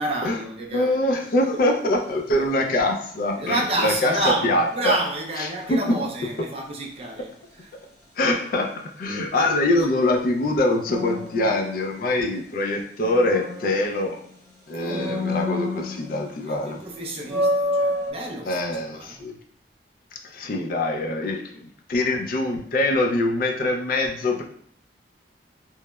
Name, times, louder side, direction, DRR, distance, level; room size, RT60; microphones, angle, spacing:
voice 1, 0.0-1.2 2.3-2.5 3.4-7.7 9.0-9.3 9.6-9.7 14.7-15.4 16.5-19.2, right 2 dB, 35° right, 0.4 m, -30 dB
voice 2, 0.7-4.1 4.4-4.9 5.4-5.8 8.2-8.7 9.0-14.2 14.7-16.8 18.5-19.3 20.3-24.4, left 2 dB, 50° left, 0.3 m, -24 dB
sound 1, 1.2-1.5 10.8-12.3 12.7-14.3 14.8-16.4 16.7-16.8 17.2-18.1, left 1 dB, 15° left, 0.8 m, -28 dB
2.9 x 2.0 x 2.2 m
head